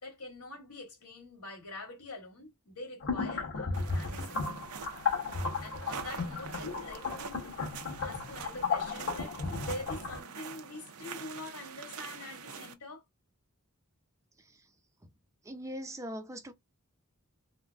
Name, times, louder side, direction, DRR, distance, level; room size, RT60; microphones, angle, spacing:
voice 1, 0.0-4.4 5.6-7.5 8.0-13.0, left 2 dB, 80° left, 2.0 m, -45 dB
sound 1, 3.0-10.2, left 4 dB, 55° left, 1.7 m, -34 dB
sound 2, 3.7-12.7, right 6 dB, 75° right, 0.6 m, -45 dB
voice 2, 15.4-16.5, equal, 15° right, 0.5 m, -41 dB
3.8 x 2.2 x 3.5 m
head